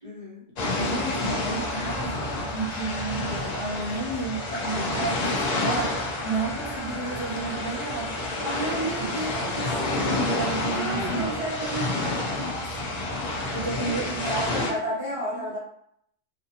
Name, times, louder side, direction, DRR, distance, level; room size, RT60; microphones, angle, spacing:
voice 1, 0.0-0.4 8.4-9.8 10.7-13.0 14.2-15.6, right 1 dB, 30° right, -9 dB, 0.8 m, -32 dB
sound 1, 0.6-14.7, left 2 dB, 85° left, 0.3 m, -29 dB
voice 2, 0.6-8.1 10.0-11.3 13.5-14.7 15.1-15.5, right 3 dB, 70° left, -2 dB, 0.9 m, -32 dB
2.5 x 2.5 x 2.7 m, 0.72 s
omnidirectional pair, 1.3 m